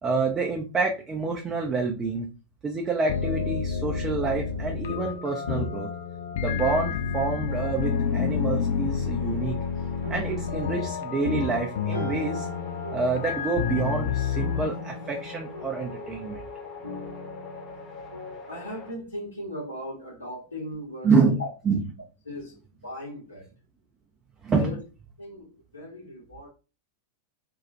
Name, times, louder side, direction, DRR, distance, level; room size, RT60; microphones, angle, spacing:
voice 1, 0.0-2.3 2.6-5.9 6.4-9.6 10.1-12.5 12.9-16.4 21.0-21.4 21.7-21.8 24.4-24.7, right 4 dB, 20° right, 0.4 m, -27 dB
sound 1, 3.1-14.6, left 7 dB, 60° left, 0.3 m, -29 dB
sound 2, 4.5-5.6 6.5-9.7 10.0-18.3, equal, 75° right, 0.7 m, -42 dB
sound 3, 7.5-18.9, left 5 dB, 25° left, 0.7 m, -43 dB
voice 2, 18.5-21.5 22.3-23.5 24.6-24.8 25.2-26.5, equal, 85° left, 0.7 m, -38 dB
2.3 x 2.0 x 2.7 m
figure-of-eight pair, 90°, 0 cm